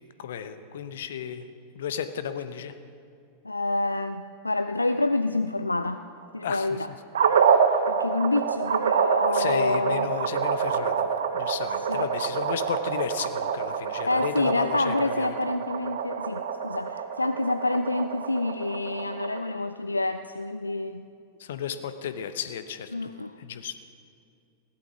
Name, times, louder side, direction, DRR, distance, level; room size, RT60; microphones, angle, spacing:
voice 1, 0.2-1.4 1.7-2.7 6.4-6.7 7.5-7.8 9.3-11.1 11.3-15.4 21.4-22.9 23.4-23.7, left 8 dB, 60° left, 11 dB, 0.8 m, -33 dB
voice 2, 3.4-6.0 6.3-6.9 7.9-10.1 11.9-12.1 14.1-21.1 22.9-23.4, left 2 dB, 85° left, 10 dB, 0.3 m, -28 dB
sound 1, 7.1-19.4, right 7 dB, 65° right, 0.8 m, -27 dB
16.5 x 11.5 x 6.1 m, 2.4 s
figure-of-eight pair, 90°, 0 cm